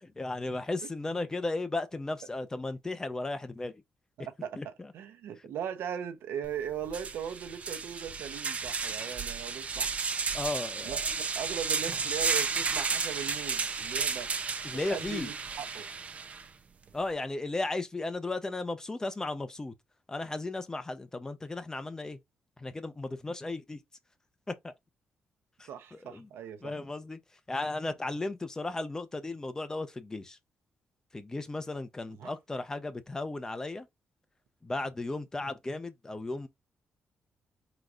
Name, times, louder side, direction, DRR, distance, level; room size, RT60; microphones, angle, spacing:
voice 1, 0.0-3.8 4.6-4.9 10.3-11.0 14.6-15.3 16.9-19.7 20.1-22.2 22.6-23.8 24.5-24.7 25.6-26.3 26.6-27.2 27.5-30.4 31.1-33.9 34.6-36.5, left 2 dB, 15° left, 0.6 m, -35 dB
voice 2, 4.4-9.9 10.8-14.3 14.8-15.9 25.7-26.7 32.2-32.3, right 8 dB, 85° right, 0.7 m, -39 dB
sound 1, 6.4-6.5 6.9-16.4, right 5 dB, 35° right, 0.6 m, -33 dB
4.6 x 4.0 x 2.5 m
cardioid pair, 140°, 4 cm